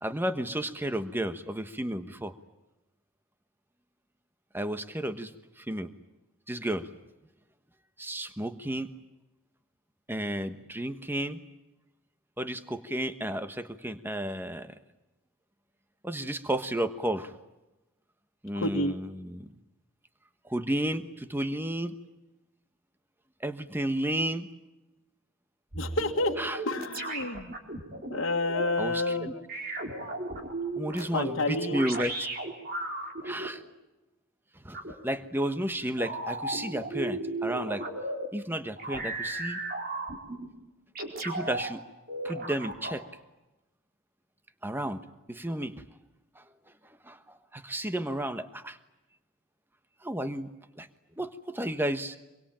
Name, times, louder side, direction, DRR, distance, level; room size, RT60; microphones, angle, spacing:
voice 1, 0.0-2.3 4.5-5.3 5.6-5.9 6.5-6.9 8.0-8.9 10.1-11.4 12.4-14.7 16.0-17.3 18.4-19.5 20.4-21.9 23.4-24.5 26.4-26.6 28.8-29.3 30.8-32.3 33.2-33.6 34.6-37.9 38.3-39.6 41.2-41.8 42.2-43.0 44.6-45.8 46.3-46.4 47.0-48.8 50.0-50.5 50.8-50.9 51.2-52.2, right 1 dB, 10° right, 10 dB, 1.2 m, -32 dB
voice 2, 18.5-19.0 25.7-26.3 26.6-27.5 28.1-29.4 31.1-31.8, left 2 dB, 60° left, 0 dB, 1.8 m, -29 dB
sound 1, 25.7-28.7 29.5-33.5 34.7-34.9 36.0-38.3 38.8-40.5 40.9-41.7 42.1-43.0, right 2 dB, 45° right, 4.4 m, -35 dB
25.5 x 23.5 x 8.9 m, 1.0 s
head